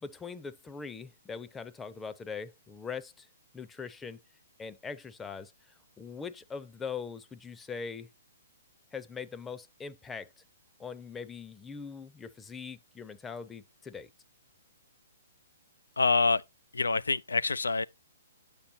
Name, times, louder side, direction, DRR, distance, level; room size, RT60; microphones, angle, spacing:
voice 1, 0.0-3.3 3.5-4.2 4.6-8.1 8.9-10.4 10.8-14.1, left 5 dB, 10° left, 0.7 m, -41 dB
voice 2, 16.0-16.4 16.7-17.8, left 4 dB, 85° left, 0.5 m, -26 dB
10.0 x 7.2 x 2.8 m
hypercardioid pair, 130°, 0 cm